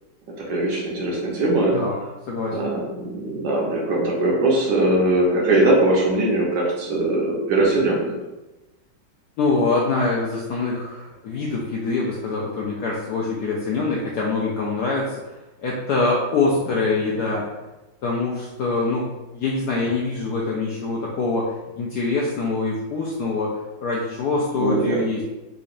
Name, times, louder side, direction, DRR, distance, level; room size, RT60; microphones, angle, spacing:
voice 1, 0.4-1.7 2.5-8.2 24.6-25.0, right 2 dB, 70° right, -3 dB, 1.4 m, -21 dB
voice 2, 2.3-2.7 9.4-15.2 15.6-17.5 18.0-23.5 23.8-25.2, left 3 dB, 75° left, -3 dB, 0.9 m, -24 dB
3.7 x 3.0 x 2.5 m, 1.1 s
omnidirectional pair, 2.2 m